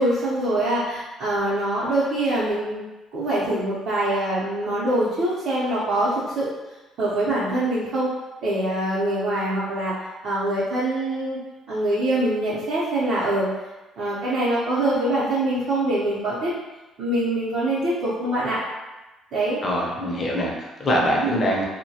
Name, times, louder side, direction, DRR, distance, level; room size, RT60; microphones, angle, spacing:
voice 1, 0.0-2.8 3.1-6.5 7.0-8.1 8.4-9.9 10.2-11.4 11.7-13.5 14.0-16.5 17.0-18.6 19.3-19.6 21.2-21.4, right 1 dB, 60° right, -10 dB, 0.6 m, -24 dB
voice 2, 19.6-21.6, equal, 35° left, -2 dB, 0.5 m, -23 dB
2.2 x 2.1 x 2.7 m, 1.1 s
cardioid pair, 145°, 0 cm